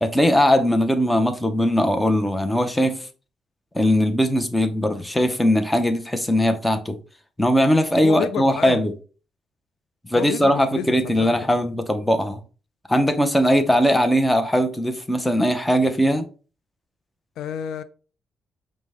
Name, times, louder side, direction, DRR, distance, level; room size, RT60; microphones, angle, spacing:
voice 1, 0.0-3.1 3.7-7.0 7.4-8.9 10.0-12.4 12.9-16.2, equal, 10° left, 0.6 m, -20 dB
voice 2, 7.9-8.8 10.1-11.6 17.4-17.8, left 8 dB, 80° left, 0.3 m, -30 dB
5.1 x 2.1 x 3.4 m
cardioid pair, 90°, 0 cm